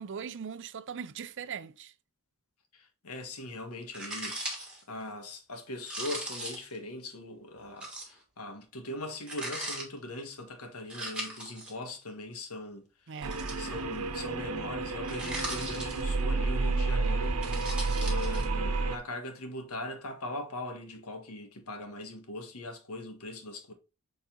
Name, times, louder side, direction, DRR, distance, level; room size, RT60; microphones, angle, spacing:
voice 1, 0.0-1.9 13.1-13.4, right 7 dB, 55° right, 0.5 m, -40 dB
voice 2, 2.7-4.5 4.9-13.2 13.6-23.7, left 2 dB, 85° left, 1.6 m, -41 dB
sound 1, 3.9-4.8 5.8-6.8 7.8-8.2 9.3-9.9 10.9-11.7 13.2-14.0 15.0-16.2 17.2-18.5, right 1 dB, 5° right, 2.1 m, -38 dB
sound 2, 13.2-19.0, right 3 dB, 90° right, 1.0 m, -30 dB
7.3 x 4.2 x 3.7 m
head